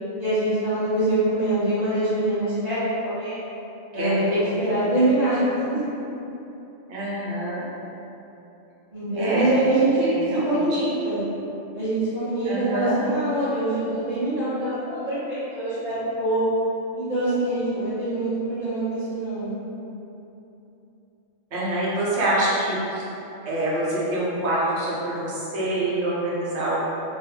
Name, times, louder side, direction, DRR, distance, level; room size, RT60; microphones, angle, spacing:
voice 1, 0.2-3.4 3.9-5.8 8.9-10.1 10.4-11.2 11.7-16.4 17.0-19.5, right 1 dB, 35° right, -16 dB, 0.8 m, -24 dB
voice 2, 3.9-4.8 6.9-7.7 9.1-9.5 9.9-10.8 12.4-13.0 21.5-23.0 23.4-26.8, right 1 dB, 65° right, -8 dB, 1.0 m, -26 dB
2.7 x 2.3 x 3.5 m, 2.9 s
omnidirectional pair, 1.3 m